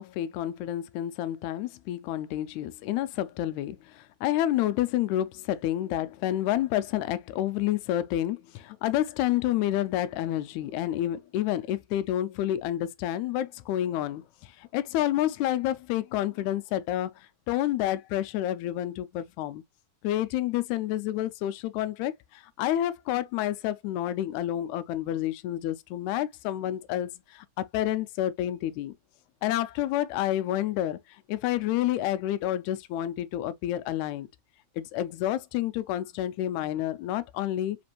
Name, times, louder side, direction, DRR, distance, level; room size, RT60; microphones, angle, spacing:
voice 1, 0.0-17.1 17.5-19.6 20.0-28.9 29.4-31.0 31.3-34.3 34.8-37.8, left 13 dB, 85° left, 1.9 m, -29 dB
5.1 x 2.5 x 2.9 m
omnidirectional pair, 3.3 m